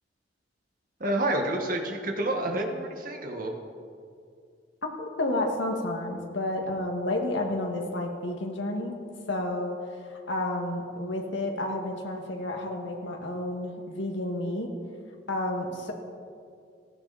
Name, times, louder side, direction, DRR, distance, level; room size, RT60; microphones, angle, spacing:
voice 1, 1.0-3.5, right 1 dB, 50° right, 2 dB, 1.9 m, -29 dB
voice 2, 4.8-9.0 9.3-9.8 10.1-14.7 15.3-15.9, left 1 dB, 85° left, 1 dB, 2.1 m, -31 dB
18.0 x 15.0 x 4.3 m, 2.3 s
head